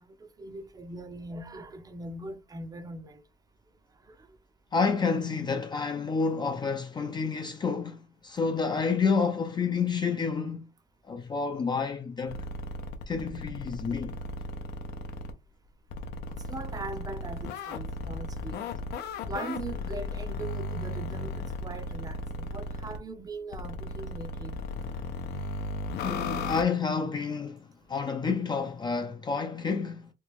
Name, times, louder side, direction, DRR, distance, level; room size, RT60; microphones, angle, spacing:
voice 1, 0.0-3.2 4.1-4.3 16.5-18.6 19.3-24.6, right 2 dB, 20° right, 0.6 m, -40 dB
voice 2, 4.7-10.7 11.1-12.4 13.1-14.2 26.0-30.1, left 5 dB, 25° left, 0.4 m, -29 dB
sound 1, 12.3-15.3 15.9-23.0 23.5-26.6, left 2 dB, 80° left, 0.6 m, -36 dB
3.1 x 2.3 x 3.4 m
cardioid pair, 110°, 17 cm